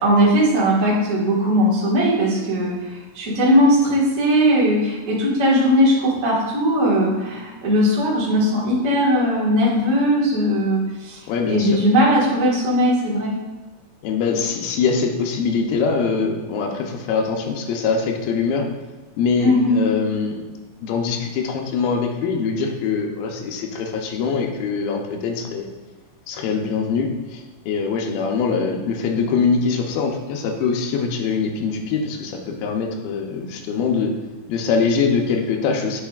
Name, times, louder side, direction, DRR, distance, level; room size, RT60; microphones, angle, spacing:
voice 1, 0.0-11.2 11.5-13.4 19.4-19.7, equal, 50° right, -6 dB, 0.9 m, -18 dB
voice 2, 11.3-11.8 14.0-18.7 19.2-20.4 20.8-25.7 26.3-34.1 34.5-36.0, left 5 dB, 80° left, 3 dB, 2.5 m, -23 dB
8.6 x 5.1 x 2.4 m, 1.2 s
omnidirectional pair, 4.3 m